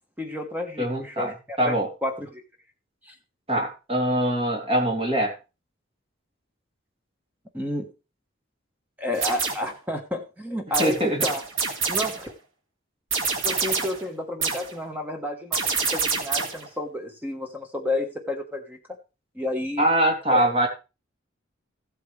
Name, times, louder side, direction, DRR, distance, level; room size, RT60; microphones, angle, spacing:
voice 1, 0.2-1.7 2.0-2.4 3.0-3.1 7.5-7.9 9.0-11.4 11.9-12.3 13.4-18.8 19.3-19.8 20.3-20.5, left 1 dB, 10° right, 4 dB, 1.3 m, -31 dB
voice 2, 0.8-1.9 3.5-5.3 10.8-11.3 19.8-20.7, right 1 dB, 30° right, 0 dB, 3.1 m, -23 dB
sound 1, 9.1-9.8 10.7-12.3 13.1-14.1 14.4-14.8 15.5-16.7, right 5 dB, 85° right, 2.0 m, -26 dB
15.0 x 8.6 x 3.3 m, 0.30 s
head